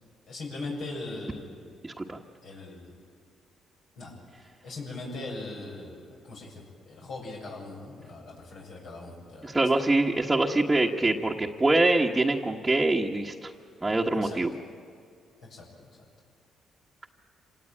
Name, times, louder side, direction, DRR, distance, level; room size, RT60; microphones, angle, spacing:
voice 1, 0.3-1.6 2.4-2.9 4.0-4.1 4.6-9.7 13.8-14.4 15.5-15.9, left 2 dB, 75° left, -2 dB, 7.3 m, -40 dB
voice 2, 1.8-2.2 9.4-13.5 13.8-14.5, right 2 dB, 15° right, -1 dB, 1.4 m, -24 dB
26.5 x 18.5 x 8.9 m, 2.3 s
cardioid pair, 90°, 0 cm